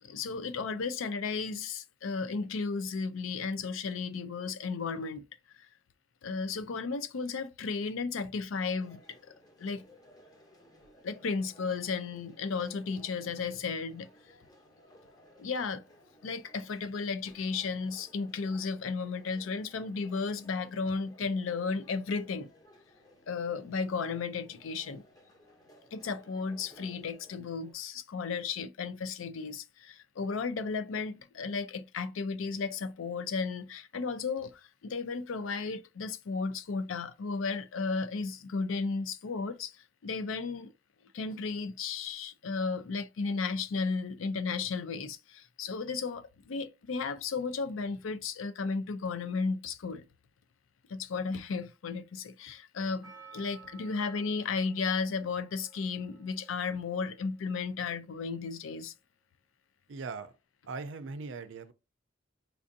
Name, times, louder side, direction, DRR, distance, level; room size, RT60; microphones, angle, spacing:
voice 1, 0.0-5.6 6.2-9.2 9.6-9.8 11.0-14.1 15.4-15.8 16.2-22.5 23.3-25.0 25.9-40.7 41.1-50.0 50.9-58.9, left 4 dB, 85° left, 0.5 m, -34 dB
sound 1, 8.6-27.7, equal, 20° left, 0.8 m, -59 dB
Percussion, 53.0-57.4 57.6-57.7, right 6 dB, 15° right, 0.7 m, -55 dB
voice 2, 59.9-60.3 60.6-61.7, right 4 dB, 70° right, 0.5 m, -40 dB
4.5 x 2.6 x 2.6 m
head